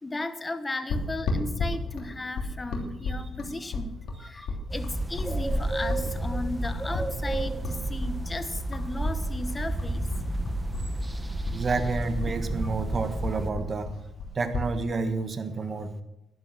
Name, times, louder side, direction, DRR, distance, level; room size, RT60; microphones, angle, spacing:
voice 1, 0.0-10.1, left 2 dB, 20° left, 11 dB, 1.2 m, -35 dB
sound 1, 0.9-9.2 9.5-11.1 11.4-14.7, left 3 dB, 75° left, 3.1 m, -33 dB
sound 2, 4.7-13.5, right 1 dB, 15° right, 1.2 m, -31 dB
voice 2, 11.5-13.9 14.3-15.9, right 4 dB, 40° right, 9 dB, 1.4 m, -29 dB
11.0 x 11.0 x 6.1 m, 0.92 s
cardioid pair, 90°, 0 cm